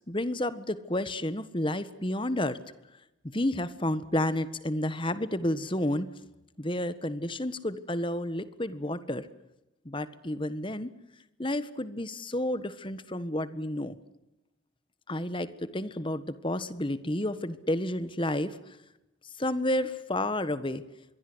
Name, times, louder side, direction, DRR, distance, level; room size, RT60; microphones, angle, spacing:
voice 1, 0.1-2.6 3.2-6.1 6.6-9.3 9.8-10.9 11.4-14.0 15.1-18.8 19.4-20.8, left 1 dB, 25° left, 13 dB, 1.5 m, -31 dB
27.0 x 22.5 x 8.0 m, 0.94 s
head